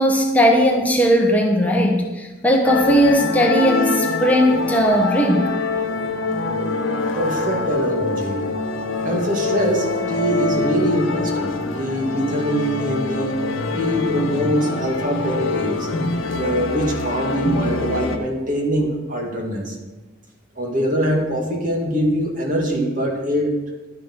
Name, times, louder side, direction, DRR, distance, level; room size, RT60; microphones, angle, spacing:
voice 1, 0.0-5.5, equal, 10° left, 1 dB, 0.9 m, -17 dB
sound 1, 2.6-18.2, left 3 dB, 90° left, 1.0 m, -24 dB
voice 2, 7.1-8.4 9.0-13.4 13.8-15.9 16.3-19.7 20.6-23.6, equal, 45° right, 0 dB, 2.1 m, -23 dB
11.0 x 10.0 x 4.5 m, 1.2 s
head